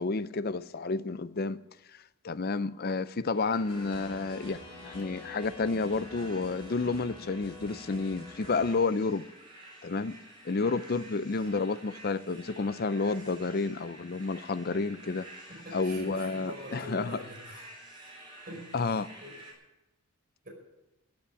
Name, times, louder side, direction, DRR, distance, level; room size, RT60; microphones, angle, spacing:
voice 1, 0.0-1.6 2.2-9.3 9.8-10.2 10.4-15.3 15.7-17.2 18.7-19.1, left 3 dB, 45° left, 0.5 m, -30 dB
sound 1, 3.3-19.5, right 1 dB, 20° right, 4.1 m, -51 dB
sound 2, 3.7-8.7, left 2 dB, 25° left, 4.1 m, -47 dB
voice 2, 15.5-17.6 18.5-18.7 19.2-19.4, equal, 40° right, 5.3 m, -44 dB
14.0 x 8.8 x 9.6 m
head